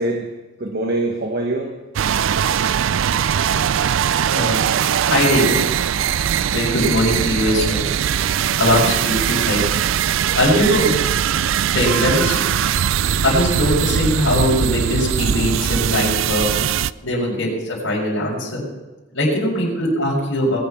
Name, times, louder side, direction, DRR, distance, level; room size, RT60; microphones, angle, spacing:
voice 1, 0.0-1.9 6.5-6.7 8.7-8.9 10.4-10.5 17.2-17.4, right 2 dB, 50° right, 3 dB, 1.3 m, -25 dB
sound 1, 2.0-16.9, right 9 dB, 70° right, 0.4 m, -20 dB
voice 2, 4.3-4.6 5.1-5.6 6.5-7.9 8.6-9.7 10.3-10.9 11.7-12.4 13.2-16.5 17.0-18.6 19.1-20.6, left 1 dB, 75° left, -10 dB, 5.4 m, -20 dB
20.5 x 8.6 x 5.7 m, 1.2 s
head